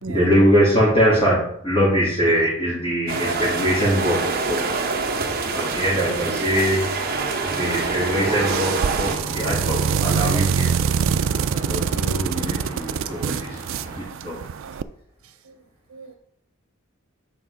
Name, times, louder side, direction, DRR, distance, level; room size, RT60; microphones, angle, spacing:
voice 1, 0.1-4.6 5.5-6.9 7.4-10.9 11.5-13.6 14.0-14.4, equal, 25° left, -9 dB, 2.6 m, -22 dB
sound 1, 3.1-9.2, right 4 dB, 45° right, 1.0 m, -26 dB
sound 2, 7.6-14.0, right 1 dB, 20° right, 2.1 m, -34 dB
sound 3, 8.4-14.8, right 7 dB, 60° right, 0.3 m, -24 dB
voice 2, 15.2-15.6 15.9-16.1, right 3 dB, 80° right, 8 dB, 0.9 m, -38 dB
8.2 x 4.6 x 5.0 m, 0.68 s
head